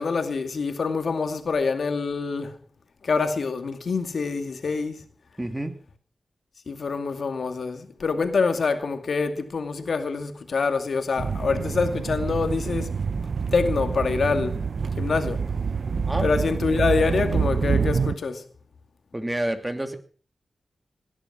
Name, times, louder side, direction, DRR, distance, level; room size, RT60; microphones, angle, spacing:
voice 1, 0.0-2.6 3.0-5.0 6.7-12.9 13.5-14.6 15.0-15.4 16.2-18.4, left 4 dB, 70° left, 2.3 m, -25 dB
voice 2, 5.4-5.8 16.0-16.3 19.1-20.0, right 1 dB, 15° right, 2.6 m, -28 dB
sound 1, 11.2-18.1, right 5 dB, 65° right, 0.6 m, -27 dB
18.0 x 11.0 x 6.2 m
cardioid pair, 65°, 0 cm